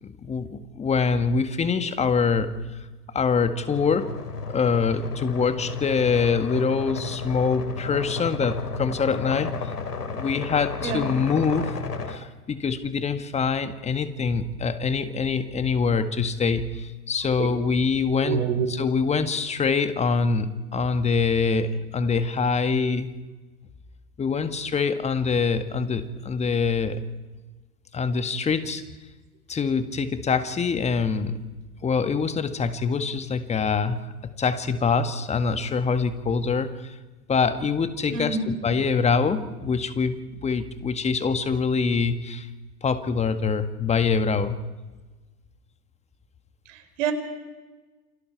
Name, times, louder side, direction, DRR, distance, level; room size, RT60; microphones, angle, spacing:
voice 1, 0.0-2.5 3.1-4.1 4.5-9.5 10.1-11.7 12.1-23.1 24.2-27.0 27.9-28.8 29.5-31.4 31.8-36.9 37.3-38.4 38.6-42.5 42.8-44.6, left 5 dB, 15° left, 10 dB, 1.7 m, -24 dB
sound 1, 3.6-12.2, left 4 dB, 80° left, 3.4 m, -33 dB
voice 2, 18.2-18.7 38.1-38.5 46.7-47.1, right 6 dB, 55° right, 7 dB, 4.7 m, -27 dB
29.0 x 26.0 x 4.7 m, 1.2 s
hypercardioid pair, 110°, 46 cm